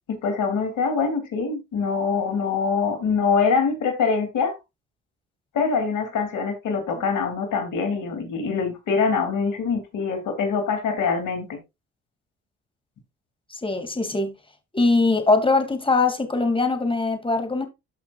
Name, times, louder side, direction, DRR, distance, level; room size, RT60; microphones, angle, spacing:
voice 1, 0.1-4.5 5.5-11.6, left 5 dB, 70° left, 3.1 m, -24 dB
voice 2, 13.5-14.3 14.7-17.7, left 3 dB, 15° left, 2.7 m, -21 dB
13.0 x 5.7 x 2.5 m
supercardioid pair, 60°, 32 cm